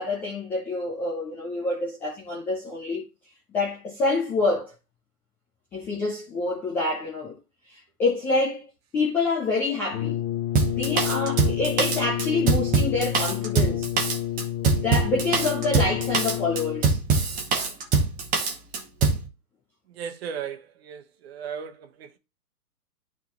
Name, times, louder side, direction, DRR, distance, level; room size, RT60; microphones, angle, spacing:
voice 1, 0.0-3.0 3.5-4.7 5.7-7.4 8.0-8.6 8.9-10.2 10.7-13.9 14.8-17.0, left 3 dB, 5° left, 0.5 m, -27 dB
Brass instrument, 9.9-17.0, left 13 dB, 40° left, 1.2 m, -30 dB
Drum kit, 10.6-19.2, right 4 dB, 15° right, 1.3 m, -23 dB
voice 2, 19.9-22.2, right 7 dB, 40° right, 1.2 m, -36 dB
11.5 x 3.8 x 3.0 m
hypercardioid pair, 130°, 47 cm